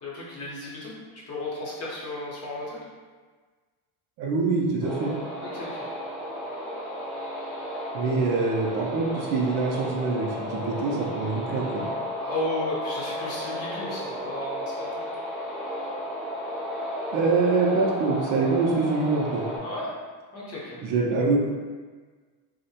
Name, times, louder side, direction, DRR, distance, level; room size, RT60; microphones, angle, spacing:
voice 1, 0.0-0.9 1.3-2.8 5.4-5.8 12.2-15.1 19.6-19.9 20.3-20.8, left 2 dB, 40° left, -6 dB, 0.8 m, -34 dB
voice 2, 4.2-5.1 7.9-11.9 17.1-19.5 20.8-21.4, right 3 dB, 50° right, -2 dB, 0.4 m, -25 dB
sound 1, 4.8-19.6, equal, ahead, 0.7 m, -34 dB
2.6 x 2.1 x 2.7 m, 1.4 s
cardioid pair, 145°, 40 cm